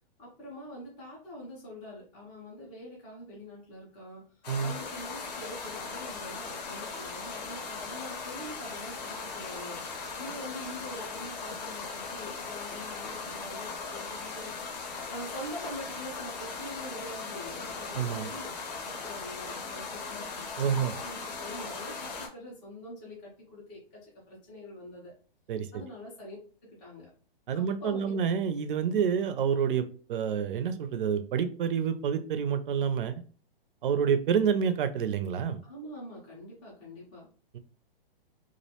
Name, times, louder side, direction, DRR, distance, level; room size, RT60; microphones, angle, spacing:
voice 1, 0.2-4.2 4.6-14.5 15.1-24.0 24.3-25.1 25.7-26.4 26.6-27.1 27.5-28.1 35.6-37.3, equal, 10° left, -5 dB, 0.3 m, -44 dB
sound 1, 4.4-22.3, left 4 dB, 45° left, 0.6 m, -39 dB
voice 2, 17.9-18.3 20.6-20.9 25.5-25.7 27.5-33.2 33.8-35.6 37.5-37.6, right 7 dB, 60° right, 10 dB, 0.4 m, -28 dB
2.4 x 2.1 x 2.7 m, 0.40 s
hypercardioid pair, 160°, 29 cm